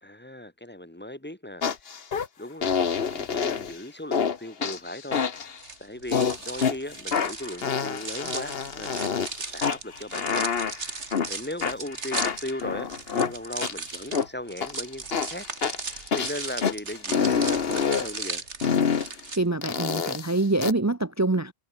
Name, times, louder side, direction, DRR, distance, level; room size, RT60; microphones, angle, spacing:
voice 1, 0.0-1.9 2.4-5.2 5.8-9.2 9.5-15.5 15.7-18.5, left 1 dB, 10° left, 2.9 m, -38 dB
sound 1, 1.6-2.3 2.6-3.8 4.1-4.4 4.6-5.6 6.1-6.8 7.1-9.3 9.6-11.3 11.6-14.3 14.6-14.8 15.1-16.7 17.1-18.1 18.6-19.1 19.6-20.7, left 6 dB, 60° left, 1.4 m, -27 dB
sound 2, 5.6-19.4, right 4 dB, 85° right, 2.7 m, -37 dB
voice 2, 19.4-21.5, right 2 dB, 25° right, 0.4 m, -25 dB
omnidirectional pair, 1.1 m